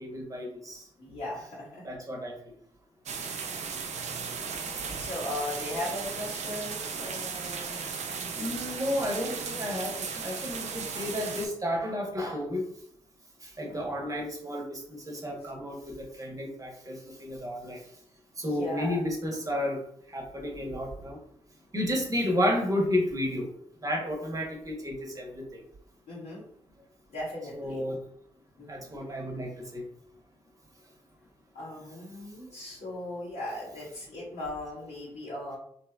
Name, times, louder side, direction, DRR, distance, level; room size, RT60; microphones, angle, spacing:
voice 1, 0.0-0.8 1.8-2.4 8.3-12.6 13.4-17.8 18.4-19.8 20.1-21.2 21.7-23.5 23.8-25.5 27.5-28.0 28.7-29.8, left 1 dB, 25° right, 0 dB, 1.0 m, -32 dB
voice 2, 1.0-1.8 5.0-7.9 18.6-19.0 26.1-26.4 27.1-27.8 28.6-28.7 31.5-35.6, left 1 dB, 70° left, -9 dB, 1.0 m, -37 dB
sound 1, 3.1-11.5, right 5 dB, 65° right, 0.4 m, -36 dB
2.9 x 2.2 x 2.3 m, 0.66 s
hypercardioid pair, 40°, 13 cm